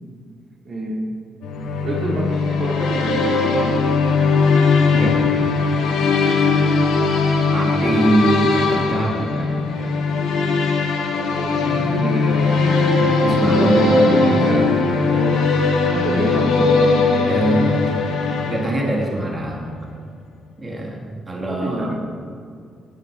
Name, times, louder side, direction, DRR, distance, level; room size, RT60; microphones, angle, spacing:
voice 1, 0.6-1.1 1.8-4.0 11.2-12.6 13.4-14.7 15.1-15.4 15.9-17.1 21.5-21.9, right 1 dB, 50° right, -2 dB, 2.9 m, -26 dB
sound 1, 1.4-19.1, left 4 dB, 90° left, 2.4 m, -19 dB
voice 2, 4.9-5.4 5.6-5.9 7.5-10.0 10.9-11.1 13.0-14.6 16.1-16.4 17.2-17.9 18.4-19.7 20.6-21.9, right 1 dB, 25° right, -1 dB, 3.0 m, -23 dB
17.5 x 10.5 x 5.3 m, 2.3 s
cardioid pair, 90°, 0 cm